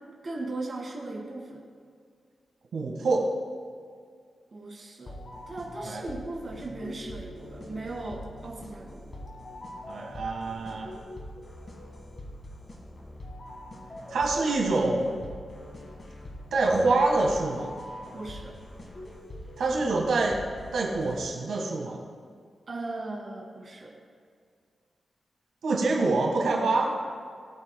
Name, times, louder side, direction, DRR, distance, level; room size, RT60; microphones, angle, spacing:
voice 1, 0.2-1.6 4.5-5.2 5.5-9.0 18.1-18.5 22.7-23.9, right 2 dB, 35° right, -2 dB, 1.9 m, -37 dB
voice 2, 2.7-3.3 5.8-6.0 9.9-10.9 14.1-15.3 16.5-17.7 19.6-20.4 20.7-22.0 25.6-26.9, right 3 dB, 85° right, -1 dB, 1.6 m, -26 dB
sound 1, 5.1-21.6, left 1 dB, 35° left, 1.8 m, -43 dB
18.5 x 8.0 x 2.3 m, 2.1 s
wide cardioid pair, 170°, 0 cm